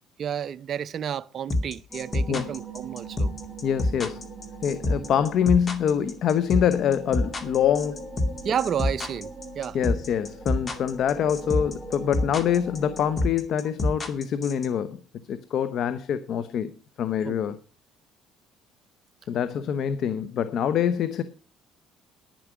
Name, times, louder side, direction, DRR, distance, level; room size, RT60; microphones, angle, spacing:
voice 1, 0.2-3.3 8.4-9.8 17.2-17.4, right 8 dB, 50° right, 0.5 m, -31 dB
sound 1, 1.5-14.7, left 2 dB, 35° left, 2.4 m, -26 dB
sound 2, 1.9-13.3, right 3 dB, 5° right, 3.3 m, -42 dB
voice 2, 3.6-4.3 4.6-8.1 9.7-15.0 15.3-17.6 19.3-21.2, left 8 dB, 60° left, 0.9 m, -25 dB
10.5 x 10.0 x 6.1 m
cardioid pair, 90°, 0 cm